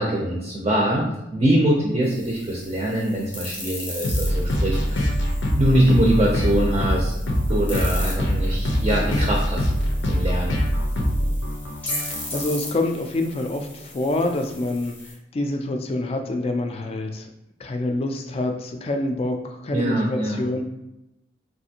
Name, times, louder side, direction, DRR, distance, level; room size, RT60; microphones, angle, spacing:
voice 1, 0.0-5.1 5.6-7.1 7.5-9.7 10.0-10.6 19.7-20.5, right 1 dB, 30° right, -2 dB, 0.4 m, -23 dB
sound 1, 2.0-15.1, left 1 dB, 10° left, 0.7 m, -38 dB
sound 2, 4.0-12.4, equal, 90° left, 0.6 m, -23 dB
voice 2, 12.3-14.9 15.3-17.3 17.6-20.6, left 2 dB, 30° left, 5 dB, 0.3 m, -26 dB
3.2 x 2.5 x 2.8 m, 0.89 s
head